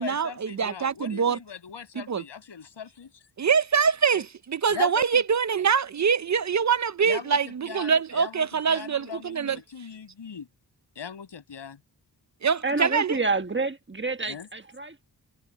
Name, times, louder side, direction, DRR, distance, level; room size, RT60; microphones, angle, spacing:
voice 1, 0.0-3.2 4.1-4.2 4.7-5.2 7.0-10.5 10.9-11.8 14.3-14.5, left 7 dB, 85° left, 6.6 m, -40 dB
voice 2, 0.6-1.4 2.1-2.2 3.4-4.2 4.5-9.6 12.4-13.2, right 6 dB, 45° right, 0.5 m, -24 dB
voice 3, 12.6-15.0, right 3 dB, 25° right, 1.4 m, -28 dB
wide cardioid pair, 85°, 41 cm